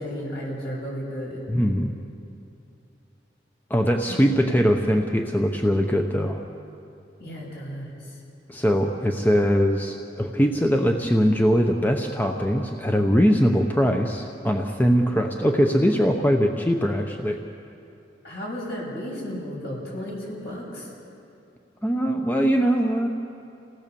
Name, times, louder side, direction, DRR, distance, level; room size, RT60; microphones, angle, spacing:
voice 1, 0.0-1.4 4.1-4.6 7.2-7.9 9.1-9.2 18.2-20.9, equal, 60° left, -3 dB, 7.7 m, -34 dB
voice 2, 1.5-1.9 3.7-6.4 8.5-17.4 21.8-23.1, equal, 10° left, 3 dB, 0.9 m, -21 dB
29.0 x 18.0 x 6.9 m, 2.6 s
head